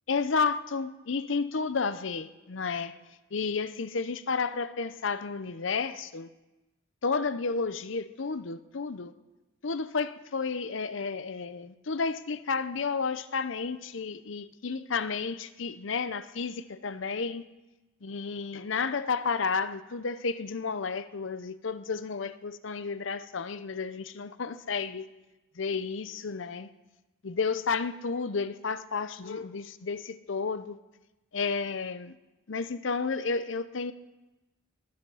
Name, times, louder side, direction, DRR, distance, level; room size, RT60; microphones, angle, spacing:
voice 1, 0.1-3.0 3.3-6.3 7.0-9.1 9.6-17.4 18.0-25.1 25.6-26.7 27.2-30.8 31.3-32.2 32.5-33.9, left 4 dB, 70° left, 0.7 m, -32 dB
20.0 x 10.0 x 5.6 m
head